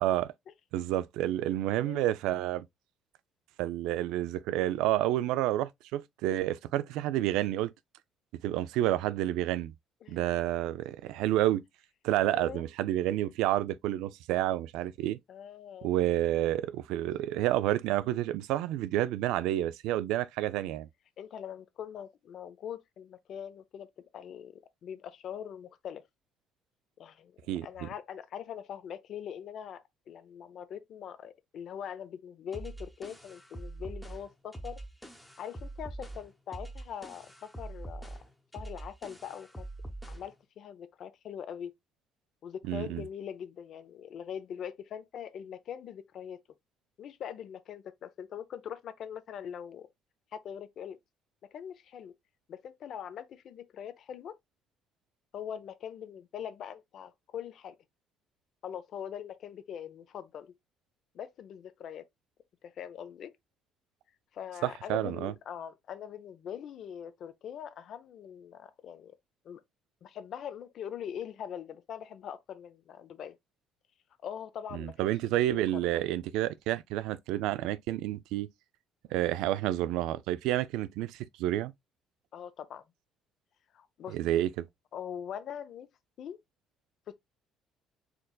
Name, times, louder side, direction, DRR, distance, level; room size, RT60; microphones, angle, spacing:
voice 1, 0.0-0.3 0.7-2.7 3.6-7.7 8.4-9.7 10.1-11.6 12.0-15.2 15.8-20.9 27.5-27.9 42.7-43.0 64.6-65.3 74.7-78.5 79.1-81.7 84.1-84.7, right 14 dB, 85° right, 0.3 m, -29 dB
voice 2, 1.9-2.2 10.0-10.3 12.3-12.6 15.3-15.9 21.2-23.9 24.1-24.5 24.8-26.0 27.0-34.8 35.4-38.2 38.5-39.7 40.1-41.7 42.4-46.4 47.0-49.9 50.3-51.0 51.5-52.1 52.5-54.4 55.3-57.7 58.6-60.5 61.1-62.0 62.6-63.3 64.3-69.1 69.4-69.6 70.0-73.4 74.2-75.1 75.5-76.0 82.3-82.8 83.7-84.2 84.9-85.9 86.2-86.4, left 8 dB, 55° left, 0.6 m, -42 dB
sound 1, 32.5-40.3, right 2 dB, 5° left, 0.9 m, -44 dB
4.4 x 3.8 x 2.3 m
cardioid pair, 120°, 0 cm